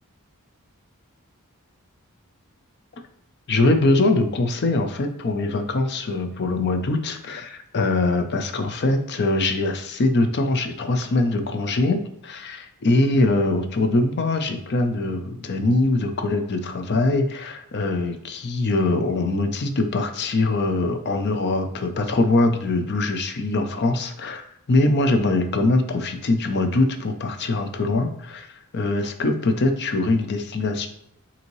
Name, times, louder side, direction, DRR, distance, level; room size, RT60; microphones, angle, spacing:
voice 1, 3.5-28.5 28.7-30.9, left 2 dB, 50° left, 7 dB, 0.5 m, -22 dB
5.2 x 2.8 x 3.0 m, 0.77 s
head